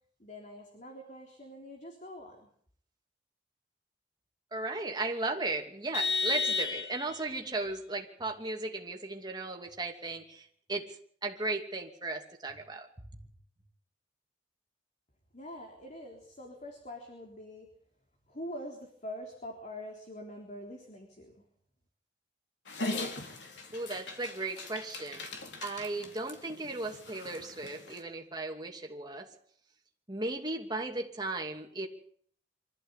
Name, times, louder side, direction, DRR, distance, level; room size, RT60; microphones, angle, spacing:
voice 1, 0.2-2.5 15.3-17.7 18.3-21.4, left 1 dB, 45° left, 2 dB, 3.8 m, -44 dB
voice 2, 4.5-10.9 11.2-12.9 23.7-25.3 25.6-29.3 30.1-31.9, right 2 dB, 25° right, 2 dB, 2.7 m, -36 dB
Vehicle horn car horn honking, 5.9-7.3, left 4 dB, 70° left, 1.3 m, -31 dB
Dog, 22.7-28.0, left 2 dB, 90° left, 3.5 m, -41 dB
25.0 x 14.5 x 8.3 m, 0.62 s
head